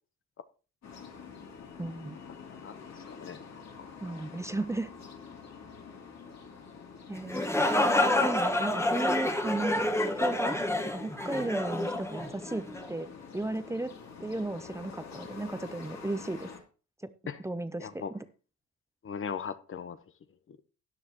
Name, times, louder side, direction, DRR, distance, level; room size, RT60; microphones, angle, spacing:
sound 1, 0.8-16.6, left 5 dB, 60° left, 2.9 m, -48 dB
voice 1, 1.8-2.2 4.0-4.9 7.1-7.4 8.2-9.8 10.2-10.6 10.9-13.1 13.3-13.9 14.2-16.5 17.0-17.1 17.4-18.2, right 2 dB, 10° right, 0.7 m, -34 dB
voice 2, 2.6-3.4 17.3-17.4 17.8-18.1 19.0-20.0, left 6 dB, 45° left, 0.9 m, -38 dB
sound 2, 7.1-12.9, left 1 dB, 10° left, 1.4 m, -28 dB
13.5 x 9.6 x 3.0 m
cardioid pair, 90°, 30 cm